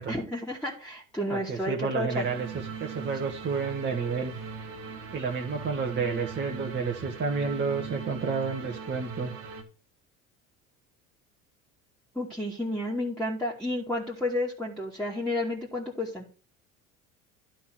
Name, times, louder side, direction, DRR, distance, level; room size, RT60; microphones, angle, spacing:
voice 1, 0.1-2.3 12.1-16.3, left 1 dB, ahead, -5 dB, 2.3 m, -31 dB
voice 2, 1.3-4.3 5.1-9.3, right 5 dB, 25° right, 0 dB, 1.5 m, -30 dB
sound 1, 2.1-9.6, right 5 dB, 75° right, 1.8 m, -40 dB
11.5 x 3.9 x 6.1 m, 0.38 s
hypercardioid pair, 70°, 40 cm